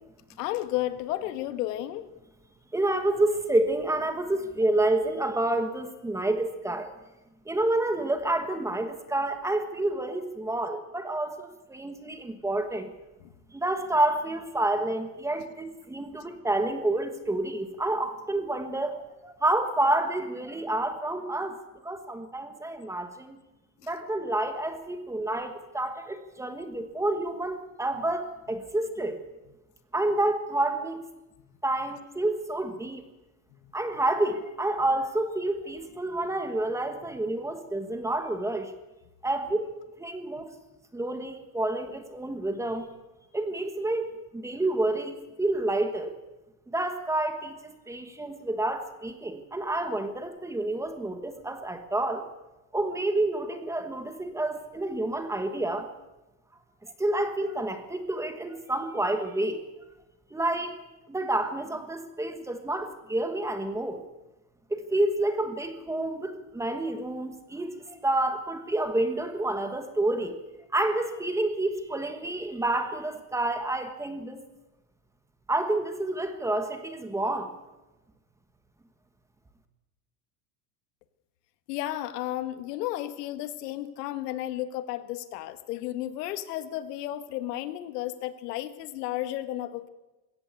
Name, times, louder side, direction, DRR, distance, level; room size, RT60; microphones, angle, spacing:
voice 1, 0.4-2.1 81.7-89.9, left 14 dB, 85° left, 11 dB, 1.9 m, -33 dB
voice 2, 2.7-6.9 7.4-12.9 13.5-21.6 21.8-23.4 23.8-29.2 29.9-31.0 31.6-33.1 33.7-38.7 39.2-39.7 40.0-40.5 40.9-42.9 43.3-46.1 46.7-52.3 52.7-55.9 57.0-59.6 60.3-60.8 61.1-64.0 64.7-70.4 70.7-74.4 75.5-77.5, right 2 dB, 5° right, 8 dB, 1.3 m, -29 dB
21.0 x 16.5 x 8.3 m, 1.1 s
supercardioid pair, 165°, 46 cm